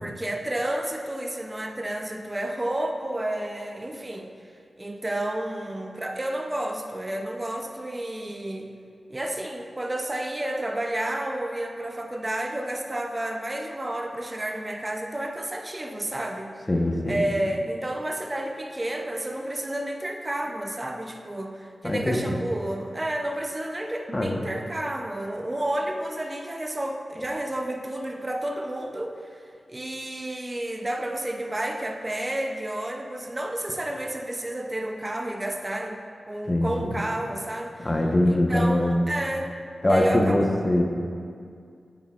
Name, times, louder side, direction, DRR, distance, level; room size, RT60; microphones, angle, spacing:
voice 1, 0.0-4.3 4.8-8.7 9.1-16.6 17.1-36.0 36.3-37.9 38.3-39.5 39.9-40.4, right 1 dB, 25° right, 3 dB, 0.5 m, -31 dB
voice 2, 16.7-17.2 21.8-22.4 24.1-24.4 36.5-37.0 37.8-39.0 39.8-40.8, left 1 dB, 30° left, 1 dB, 0.9 m, -22 dB
8.7 x 7.4 x 2.4 m, 2.3 s
cardioid pair, 60°, 0 cm